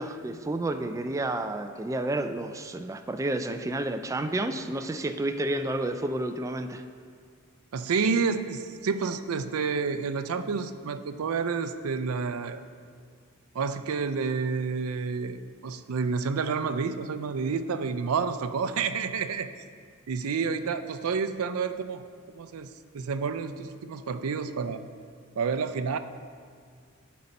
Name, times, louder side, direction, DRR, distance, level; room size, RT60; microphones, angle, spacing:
voice 1, 0.0-6.8, right 1 dB, 15° right, 8 dB, 0.3 m, -30 dB
voice 2, 7.7-12.6 13.5-19.5 20.1-24.8 25.4-26.0, right 5 dB, 85° right, 11 dB, 0.4 m, -29 dB
11.0 x 4.2 x 5.3 m, 2.1 s
head